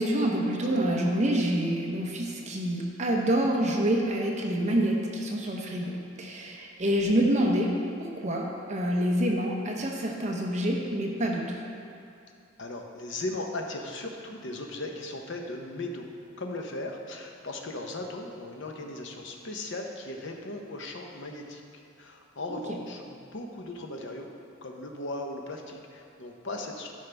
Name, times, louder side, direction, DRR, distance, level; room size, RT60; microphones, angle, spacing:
voice 1, 0.0-7.7 8.0-11.5 22.5-22.6, right 1 dB, 35° right, -1 dB, 0.8 m, -27 dB
voice 2, 12.6-16.1 16.4-21.6 22.0-24.3 24.6-26.9, left 2 dB, 60° left, 2 dB, 0.9 m, -37 dB
13.5 x 5.5 x 3.4 m, 2.5 s
head